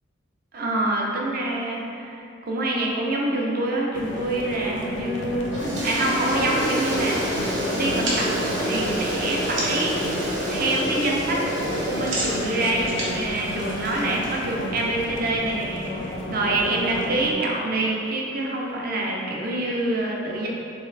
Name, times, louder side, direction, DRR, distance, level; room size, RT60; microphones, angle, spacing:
voice 1, 0.5-5.5 5.8-7.2 7.7-8.3 8.6-20.5, right 2 dB, 50° right, -2 dB, 0.5 m, -26 dB
sound 1, 3.9-17.3, left 1 dB, 65° left, 0.4 m, -33 dB
Toilet flush, 5.5-14.9, equal, 65° right, 0.9 m, -29 dB
sound 2, 8.0-10.0 10.3-10.8 11.0-14.3, right 1 dB, 90° right, 1.0 m, -32 dB
3.5 x 3.1 x 3.2 m, 2.7 s
head